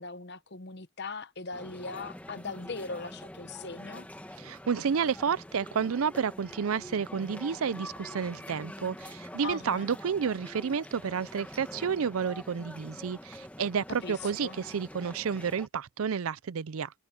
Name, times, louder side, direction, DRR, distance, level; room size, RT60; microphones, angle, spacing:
voice 1, 0.0-4.1 9.4-9.9 14.0-14.6, left 4 dB, 50° left, 0.9 m, -40 dB
sound 1, 1.5-15.7, left 1 dB, 5° left, 1.5 m, -45 dB
voice 2, 4.4-16.9, right 6 dB, 75° right, 0.5 m, -31 dB
head